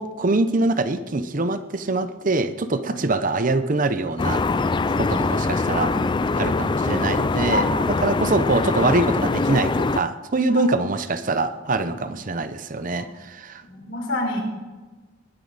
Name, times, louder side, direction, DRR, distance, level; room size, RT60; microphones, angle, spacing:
voice 1, 0.0-4.4 5.0-5.9 6.3-13.6, right 2 dB, 45° right, 11 dB, 0.7 m, -24 dB
sound 1, 4.2-10.0, left 3 dB, 25° left, 0.3 m, -23 dB
voice 2, 13.6-14.4, left 2 dB, 65° left, 1 dB, 4.2 m, -27 dB
20.5 x 9.7 x 4.1 m, 1.3 s
head